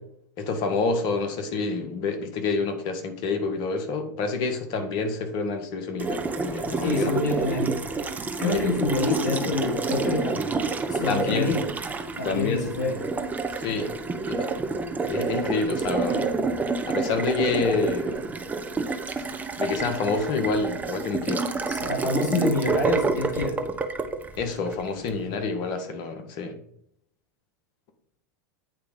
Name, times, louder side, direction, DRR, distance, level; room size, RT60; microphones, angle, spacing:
voice 1, 0.4-7.1 8.4-8.7 11.1-11.6 12.2-12.7 13.6-14.5 15.1-16.3 16.9-18.3 19.6-21.4 24.4-26.6, left 4 dB, 50° left, 6 dB, 1.7 m, -28 dB
Water tap faucet, 6.0-25.2, right 4 dB, 15° right, 1.0 m, -29 dB
voice 2, 6.8-7.8 8.4-10.5 10.9-11.7 12.2-13.0 21.7-23.6, left 3 dB, 75° left, 1 dB, 3.6 m, -26 dB
9.1 x 5.0 x 5.1 m, 0.68 s
hypercardioid pair, 100°, 10 cm